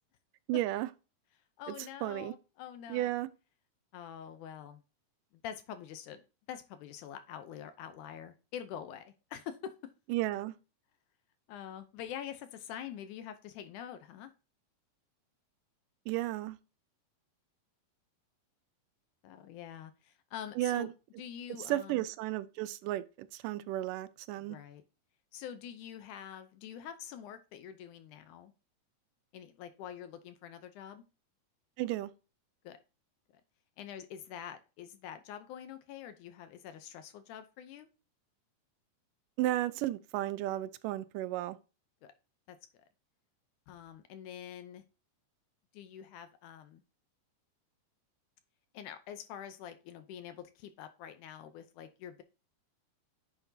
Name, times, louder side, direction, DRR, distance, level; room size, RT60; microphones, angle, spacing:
voice 1, 0.5-0.9 1.7-1.8 2.0-2.3 2.9-3.3 10.1-10.6 16.1-16.6 20.6-20.9 21.7-24.6 31.8-32.1 39.4-41.6, right 15 dB, 80° right, 2.1 m, -33 dB
voice 2, 1.6-3.1 3.9-4.8 5.3-6.2 6.5-9.8 11.5-14.3 19.2-20.9 21.2-22.1 24.4-24.8 25.3-28.5 29.3-31.0 32.6-32.8 33.8-37.9 42.0-42.1 42.5-42.6 43.7-44.8 45.7-46.8 48.7-52.2, left 9 dB, 75° left, 2.0 m, -46 dB
10.0 x 5.9 x 2.7 m
omnidirectional pair, 3.9 m